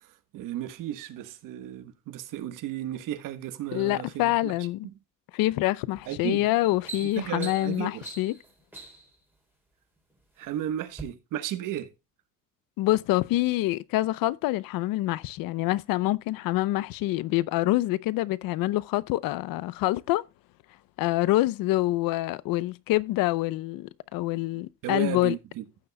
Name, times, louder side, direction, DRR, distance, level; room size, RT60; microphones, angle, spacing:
voice 1, 0.3-4.5 6.1-6.4 7.2-8.0 10.4-11.9 24.8-25.6, right 12 dB, 70° right, 1.4 m, -34 dB
voice 2, 3.7-4.9 5.3-8.4 12.8-20.2 21.0-25.4, left 17 dB, 85° left, 0.7 m, -26 dB
sound 1, 5.9-6.2 6.5-9.2 10.0-10.5 10.9-11.0, right 3 dB, 5° right, 3.5 m, -43 dB
15.5 x 6.9 x 2.2 m
cardioid pair, 160°, 33 cm